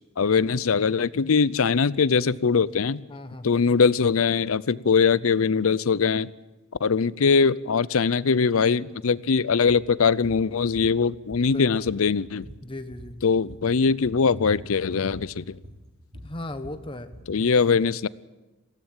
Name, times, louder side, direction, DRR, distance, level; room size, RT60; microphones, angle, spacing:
voice 1, 0.2-3.0 3.4-6.3 6.8-12.5 13.2-15.6 17.3-18.1, left 5 dB, 80° left, 19 dB, 0.6 m, -22 dB
voice 2, 3.1-3.6 11.5-11.8 12.6-13.2 16.2-17.1, left 1 dB, 25° left, 9 dB, 1.3 m, -37 dB
sound 1, 9.7-9.9 10.2-10.4 10.8-11.6 11.9-13.7 14.0-14.2 14.5-14.7 15.1-15.3 15.6-17.3, equal, 45° right, 3.7 m, -45 dB
20.5 x 16.0 x 8.9 m, 1.2 s
head